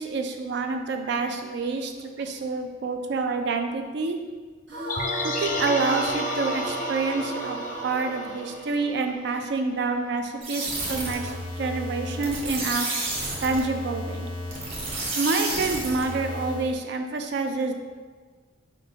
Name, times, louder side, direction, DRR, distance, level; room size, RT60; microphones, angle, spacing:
voice 1, 0.0-4.2 5.2-12.9 13.4-14.3 15.1-17.7, right 3 dB, 65° right, 5 dB, 0.4 m, -28 dB
sound 1, 4.7-9.9, right 3 dB, 80° right, 1.0 m, -33 dB
sound 2, 4.9-9.1 9.4-9.5, left 4 dB, 45° left, 0.4 m, -34 dB
sound 3, 10.4-16.8, right 1 dB, 35° right, 0.9 m, -31 dB
5.2 x 2.2 x 3.9 m, 1.5 s
head